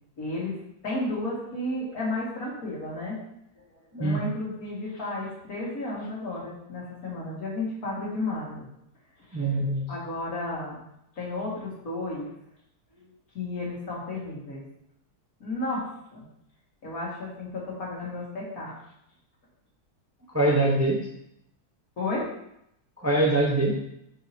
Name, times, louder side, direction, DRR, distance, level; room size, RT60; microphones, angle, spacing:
voice 1, 0.2-0.6 0.8-3.2 3.6-3.7 4.0-8.7 9.9-10.8 11.2-12.3 13.0-13.1 13.3-14.6 15.4-15.8 16.1-16.2 16.8-18.7 22.0-22.3, left 2 dB, 60° left, -6 dB, 2.6 m, -32 dB
voice 2, 9.3-9.8 20.3-21.0 23.0-23.7, right 2 dB, 10° right, -2 dB, 0.8 m, -23 dB
8.0 x 5.6 x 2.9 m, 0.78 s
omnidirectional pair, 1.7 m